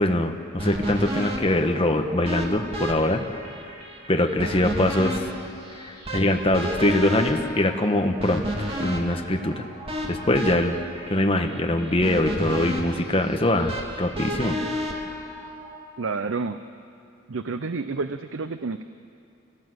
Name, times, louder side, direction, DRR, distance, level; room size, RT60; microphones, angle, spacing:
voice 1, 0.0-3.2 4.1-5.2 5.8-8.4 8.8-9.6 10.1-10.8 11.1-14.6, left 1 dB, 25° left, 4 dB, 1.3 m, -23 dB
sound 1, 0.6-15.8, equal, 30° right, 2.6 m, -32 dB
voice 2, 16.0-16.6 17.3-18.8, right 4 dB, 70° right, 10 dB, 0.6 m, -29 dB
28.0 x 17.0 x 7.9 m, 2.6 s
head